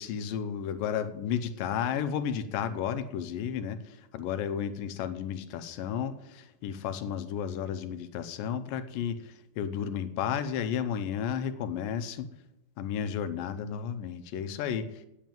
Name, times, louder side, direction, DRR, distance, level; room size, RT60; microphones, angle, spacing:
voice 1, 0.0-12.3 12.8-15.1, left 8 dB, 85° left, 10 dB, 2.4 m, -33 dB
9.2 x 8.4 x 8.9 m, 0.92 s
omnidirectional pair, 3.9 m